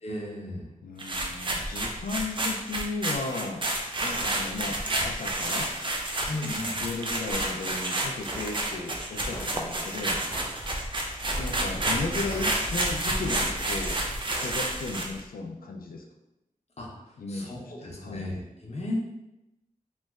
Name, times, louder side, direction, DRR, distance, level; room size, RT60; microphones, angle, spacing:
voice 1, 0.0-0.7 6.3-6.8 16.8-16.9 17.3-19.0, left 1 dB, 50° left, -3 dB, 0.8 m, -35 dB
voice 2, 0.8-3.6 4.0-5.7 6.8-10.2 11.4-14.0 14.3-16.0 17.2-18.3, left 3 dB, 85° left, 3 dB, 0.4 m, -35 dB
sound 1, 1.0-15.2, right 1 dB, 35° right, 0.5 m, -30 dB
sound 2, 7.3-7.5 8.3-8.5 9.3-9.5 10.3-10.5 11.3-11.5 12.3-12.5 13.3-13.5 14.3-14.5, equal, 15° left, 0.9 m, -38 dB
3.1 x 2.1 x 3.5 m, 0.91 s
wide cardioid pair, 55°, 15 cm